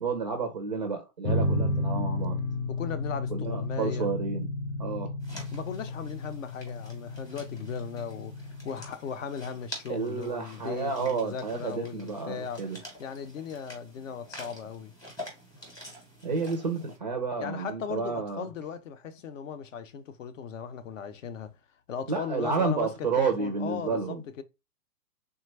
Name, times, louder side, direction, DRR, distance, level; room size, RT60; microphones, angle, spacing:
voice 1, 0.0-2.4 3.3-4.5 4.8-5.1 9.9-12.8 16.2-18.5 22.1-24.2, right 5 dB, 30° right, 0.4 m, -30 dB
sound 1, 1.2-8.9, left 2 dB, 90° left, 0.7 m, -32 dB
voice 2, 2.7-4.1 5.5-12.7 13.0-14.9 17.4-21.6 21.9-24.4, left 7 dB, 55° left, 0.6 m, -37 dB
sound 2, 5.2-17.0, equal, 10° left, 0.7 m, -47 dB
3.3 x 2.2 x 3.1 m
hypercardioid pair, 145°, 48 cm